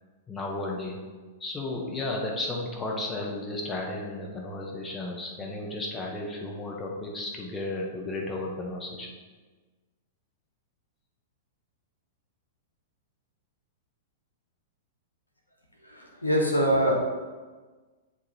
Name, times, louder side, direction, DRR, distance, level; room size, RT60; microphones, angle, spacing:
voice 1, 0.3-1.1 1.4-9.1, left 2 dB, 15° left, -1 dB, 1.1 m, -33 dB
voice 2, 15.8-16.9, equal, 80° left, 0 dB, 1.3 m, -24 dB
9.6 x 3.3 x 4.1 m, 1.3 s
figure-of-eight pair, 100°, 0 cm